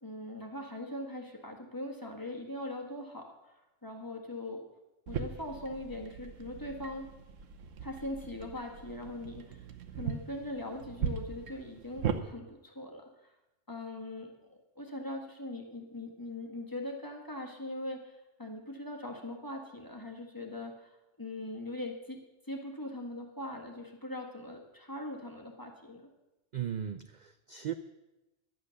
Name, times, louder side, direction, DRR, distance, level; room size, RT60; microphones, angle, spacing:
voice 1, 0.0-4.6 5.1-7.1 7.8-9.6 9.9-13.3 13.7-22.2 22.4-26.1, left 1 dB, 15° left, 1 dB, 1.6 m, -41 dB
sound 1, 5.1-12.2, right 7 dB, 85° right, 1.3 m, -39 dB
voice 2, 26.5-27.7, right 9 dB, 60° right, 10 dB, 0.4 m, -37 dB
12.0 x 9.1 x 6.4 m, 1.0 s
omnidirectional pair, 1.3 m